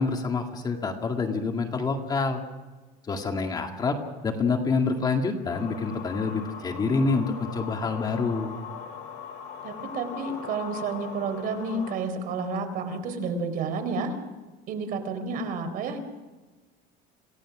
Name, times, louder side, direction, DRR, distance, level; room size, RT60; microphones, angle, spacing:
voice 1, 0.0-2.4 3.1-4.0 4.2-8.5, left 4 dB, 20° left, 3 dB, 2.0 m, -27 dB
sound 1, 5.5-11.9, left 7 dB, 80° left, 5.6 m, -40 dB
voice 2, 9.6-14.2 14.7-16.0, right 4 dB, 50° right, 7 dB, 3.9 m, -30 dB
27.0 x 17.5 x 6.2 m, 1.2 s
cardioid pair, 155°, 19 cm